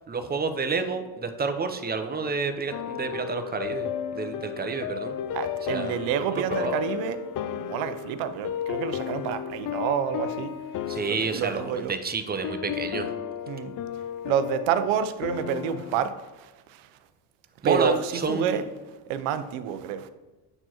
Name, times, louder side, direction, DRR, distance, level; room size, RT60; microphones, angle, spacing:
voice 1, 0.1-3.9 4.1-5.2 5.7-6.8 10.9-13.1 17.6-18.6, right 4 dB, 20° right, 0.7 m, -29 dB
sound 1, 2.7-16.0, left 9 dB, 50° left, 0.5 m, -34 dB
voice 2, 5.3-7.2 7.5-10.5 11.1-12.0 13.5-13.7 14.2-16.9 17.6-18.6 19.1-20.1, right 8 dB, 90° right, 0.6 m, -28 dB
7.8 x 4.4 x 2.9 m
supercardioid pair, 80°, 44 cm